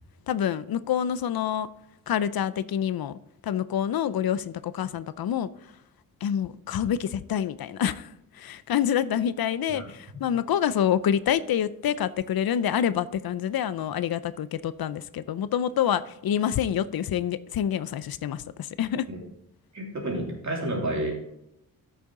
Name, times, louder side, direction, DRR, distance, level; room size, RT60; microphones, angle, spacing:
voice 1, 0.3-1.7 2.1-5.5 6.2-19.1, left 9 dB, 85° left, 0.6 m, -27 dB
voice 2, 19.7-21.1, right 1 dB, 55° right, 2.9 m, -30 dB
13.0 x 6.9 x 3.8 m
wide cardioid pair, 140°, 35 cm